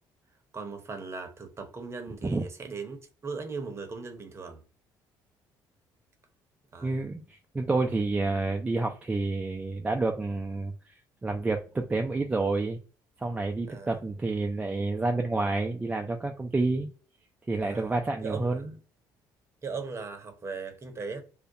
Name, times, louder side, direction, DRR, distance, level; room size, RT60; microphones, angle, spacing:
voice 1, 0.5-3.0 3.2-4.6 6.7-7.0 13.6-13.9 17.6-18.8 19.6-21.2, right 4 dB, 30° right, 0.7 m, -38 dB
voice 2, 6.8-10.7 11.2-12.8 13.2-16.9 17.5-18.7, right 3 dB, 15° right, 0.3 m, -29 dB
2.3 x 2.1 x 2.6 m
cardioid pair, 90°, 9 cm